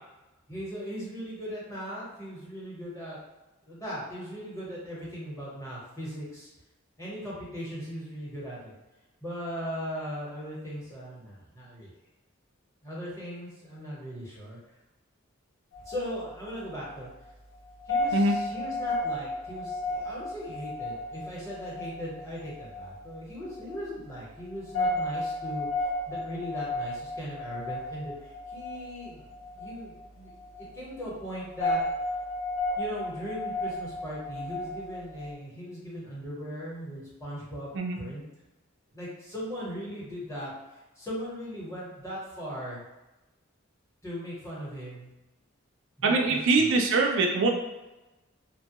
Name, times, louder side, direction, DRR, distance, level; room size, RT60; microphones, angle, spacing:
voice 1, 0.5-3.2 3.7-6.5 7.0-8.7 9.2-11.9 12.8-14.6 15.8-17.1 17.9-25.7 26.1-30.3 30.7-31.8 32.8-38.2 38.9-42.8 44.0-45.1 46.0-46.7, equal, 15° left, -7 dB, 1.0 m, -38 dB
sound 1, 15.7-35.3, left 1 dB, 80° left, 0.6 m, -34 dB
voice 2, 46.0-47.5, right 3 dB, 65° right, 1 dB, 0.4 m, -23 dB
2.8 x 2.2 x 2.8 m, 1.0 s
head